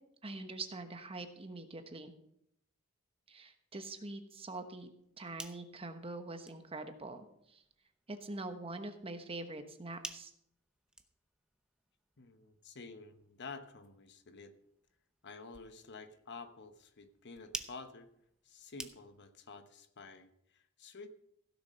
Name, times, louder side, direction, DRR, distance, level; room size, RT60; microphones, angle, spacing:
voice 1, 0.2-2.1 3.3-4.9 5.2-7.6 8.1-10.3, right 2 dB, 25° right, 7 dB, 1.1 m, -44 dB
sound 1, 5.0-19.4, right 1 dB, 5° right, 0.7 m, -53 dB
voice 2, 12.2-14.5 15.2-18.1 18.4-21.1, left 4 dB, 55° left, 9 dB, 1.0 m, -50 dB
16.0 x 6.9 x 5.5 m, 0.75 s
head